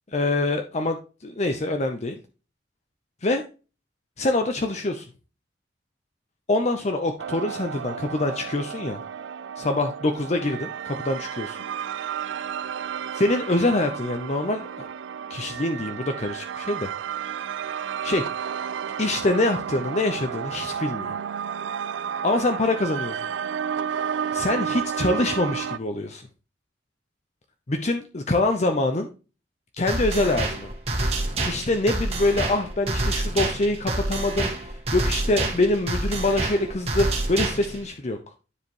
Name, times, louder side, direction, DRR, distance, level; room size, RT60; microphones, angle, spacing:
voice 1, 0.1-1.0 1.2-2.2 3.2-3.4 4.2-5.1 6.5-9.0 9.6-11.6 13.1-14.9 15.3-16.9 18.0-18.3 19.0-21.2 22.2-23.3 24.3-26.2 27.7-29.1 29.8-30.7 31.4-38.2, left 2 dB, 35° left, 6 dB, 0.7 m, -25 dB
sound 1, 7.2-25.8, right 8 dB, 75° right, 0.4 m, -32 dB
sound 2, 29.9-37.9, right 2 dB, 35° right, 1.9 m, -27 dB
9.8 x 4.9 x 3.0 m, 0.33 s
head